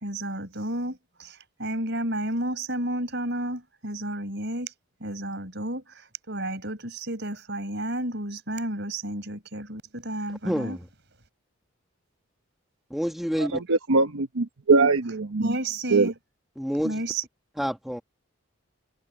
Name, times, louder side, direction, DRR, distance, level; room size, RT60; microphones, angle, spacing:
voice 1, 0.0-4.7 5.0-10.8 15.4-16.1 16.8-17.2, right 1 dB, 55° right, 5.1 m, -31 dB
voice 2, 10.4-10.9 12.9-13.6 16.6-17.0 17.6-18.0, equal, ahead, 1.2 m, -28 dB
voice 3, 13.7-15.5 15.9-16.1, right 3 dB, 85° right, 1.0 m, -21 dB
head